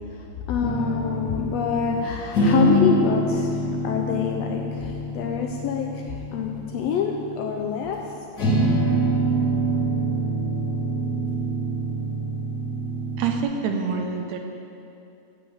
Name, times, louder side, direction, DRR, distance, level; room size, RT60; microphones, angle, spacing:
voice 1, 0.1-8.0 8.4-8.8, left 7 dB, 80° left, 2 dB, 1.5 m, -27 dB
sound 1, 0.6-2.0 2.3-8.1 8.4-13.4, right 1 dB, 30° left, 1.7 m, -25 dB
voice 2, 13.2-14.4, right 5 dB, 75° right, 4 dB, 1.9 m, -26 dB
7.7 x 7.2 x 7.0 m, 2.6 s
omnidirectional pair, 3.4 m